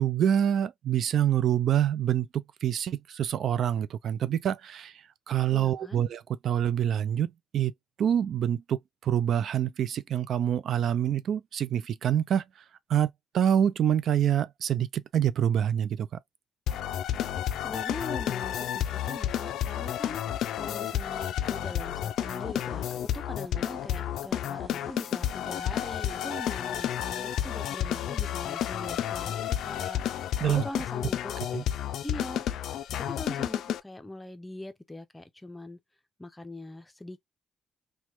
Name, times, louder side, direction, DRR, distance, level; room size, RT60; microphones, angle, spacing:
voice 1, 0.0-7.7 8.0-12.4 12.9-16.1 30.4-30.6 31.5-31.6, right 10 dB, 65° right, 0.3 m, -26 dB
voice 2, 5.5-6.0 17.6-20.2 20.5-31.3 32.0-32.5 33.0-35.8 36.2-37.2, left 1 dB, 15° left, 0.6 m, -42 dB
sound 1, 16.7-33.8, left 10 dB, 80° left, 0.3 m, -31 dB
sound 2, 22.2-28.6, right 4 dB, 40° right, 1.0 m, -56 dB
3.0 x 2.2 x 2.9 m
cardioid pair, 90°, 0 cm